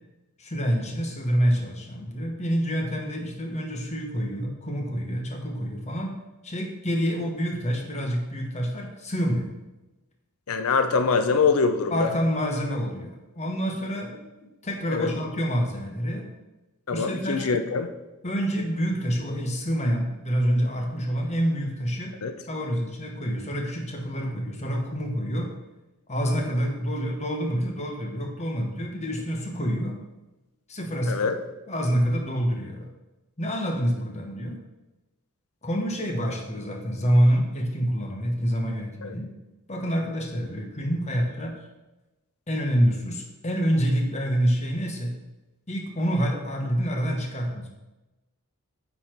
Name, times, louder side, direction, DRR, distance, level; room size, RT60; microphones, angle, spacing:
voice 1, 0.4-6.2 6.4-9.5 11.9-14.2 14.6-16.3 16.9-17.5 18.2-22.1 22.5-25.5 26.1-30.0 30.7-31.2 31.7-32.9 33.4-34.6 35.6-39.3 39.7-41.6 42.5-45.1 45.7-47.7, equal, 30° left, 1 dB, 1.2 m, -27 dB
voice 2, 10.5-12.1 14.9-15.1 16.9-17.9 22.2-22.3 31.1-31.3 39.0-39.1, left 4 dB, 75° left, 8 dB, 0.6 m, -24 dB
9.3 x 4.2 x 4.5 m, 1.0 s
head